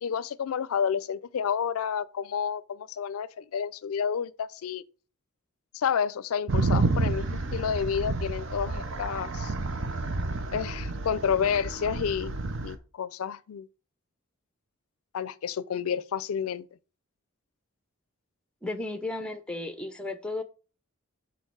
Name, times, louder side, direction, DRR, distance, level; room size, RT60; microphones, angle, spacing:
voice 1, 0.0-4.8 5.7-9.5 10.5-13.7 15.1-16.7, left 7 dB, 80° left, 0.4 m, -30 dB
sound 1, 6.5-12.7, right 3 dB, 60° right, 0.7 m, -30 dB
voice 2, 18.6-20.4, left 2 dB, 5° left, 0.6 m, -34 dB
6.4 x 4.1 x 4.6 m
head